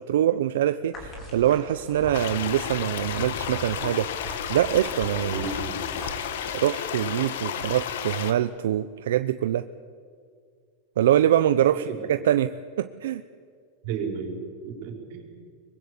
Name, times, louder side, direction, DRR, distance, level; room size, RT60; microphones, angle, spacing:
voice 1, 0.0-4.1 4.5-5.4 6.5-9.7 11.0-13.2, right 11 dB, 80° right, 11 dB, 0.7 m, -24 dB
sound 1, 0.9-6.3, equal, 25° left, 4.3 m, -40 dB
sound 2, 2.1-8.3, left 9 dB, 75° left, 1.7 m, -32 dB
voice 2, 5.2-5.8 11.7-12.0 13.8-15.4, right 5 dB, 50° right, 2 dB, 5.2 m, -33 dB
24.0 x 21.5 x 8.4 m, 2.2 s
supercardioid pair, 165°, 0 cm